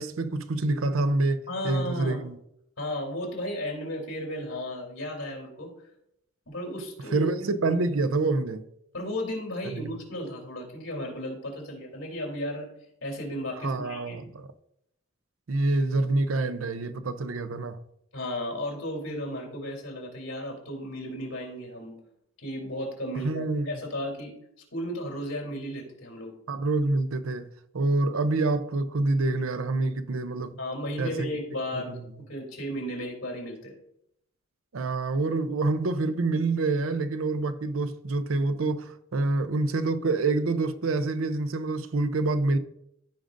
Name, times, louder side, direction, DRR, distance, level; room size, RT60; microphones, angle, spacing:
voice 1, 0.0-2.4 7.1-8.6 9.7-9.9 13.6-14.5 15.5-17.8 23.2-23.8 26.5-27.5 27.7-30.6 31.0-31.3 31.7-32.0 34.7-42.6, right 2 dB, 85° right, 0.6 m, -27 dB
voice 2, 1.5-2.3 2.8-5.7 6.5-7.3 8.9-12.7 13.0-14.2 18.1-21.9 22.4-24.3 24.7-26.3 30.6-33.7, equal, 80° left, 2.9 m, -34 dB
14.5 x 5.1 x 2.5 m
head